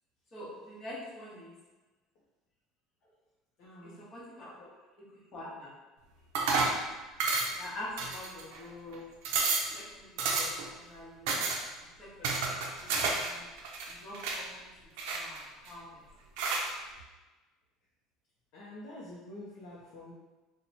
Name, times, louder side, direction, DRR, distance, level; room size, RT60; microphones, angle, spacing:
voice 1, 0.3-1.5 3.8-4.7 5.0-5.7 7.6-9.1 9.7-11.4 12.0-12.5 12.8-13.5 13.9-14.7 15.1-16.0, left 1 dB, 30° left, -7 dB, 1.0 m, -45 dB
voice 2, 3.6-4.0 4.5-5.2 18.5-20.1, left 1 dB, 50° left, -6 dB, 0.6 m, -48 dB
sound 1, 6.3-6.8 7.2-7.6 8.0-8.6 8.9-9.0 9.2-9.7 10.2-10.7 11.3-11.6 12.2-13.3 13.6-14.4 15.0-15.7 16.4-16.7, right 3 dB, 75° right, 0.5 m, -30 dB
2.9 x 2.2 x 3.9 m, 1.2 s
cardioid pair, 175°, 0 cm